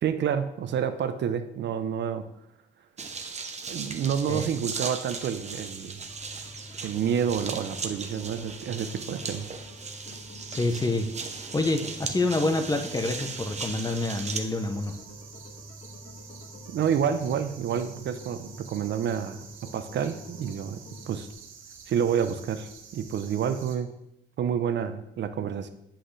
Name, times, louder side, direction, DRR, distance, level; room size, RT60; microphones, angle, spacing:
voice 1, 0.0-2.2 3.7-6.0 6.8-9.5 16.7-19.5 19.7-21.3 21.9-23.9 24.4-25.7, right 8 dB, 65° right, 10 dB, 0.7 m, -29 dB
sound 1, 3.0-14.4, right 4 dB, 35° right, 0.9 m, -37 dB
sound 2, 6.0-21.3, left 1 dB, 60° left, 2.2 m, -47 dB
voice 2, 10.5-11.1 11.5-14.9, left 2 dB, 20° left, 7 dB, 0.8 m, -27 dB
sound 3, 12.0-23.8, right 6 dB, 90° right, 1.0 m, -48 dB
7.9 x 5.8 x 3.3 m, 0.82 s
cardioid pair, 90°, 20 cm